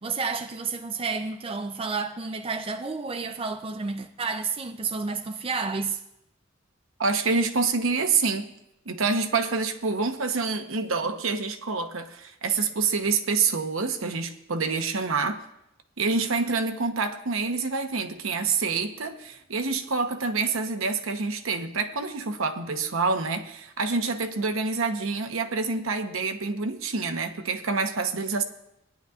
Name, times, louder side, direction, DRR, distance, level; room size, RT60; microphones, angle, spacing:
voice 1, 0.0-6.0, right 4 dB, 25° right, 0.5 m, -30 dB
voice 2, 7.0-8.5 8.9-15.4 16.0-28.4, right 4 dB, 70° right, 0.9 m, -27 dB
19.5 x 10.5 x 2.4 m
head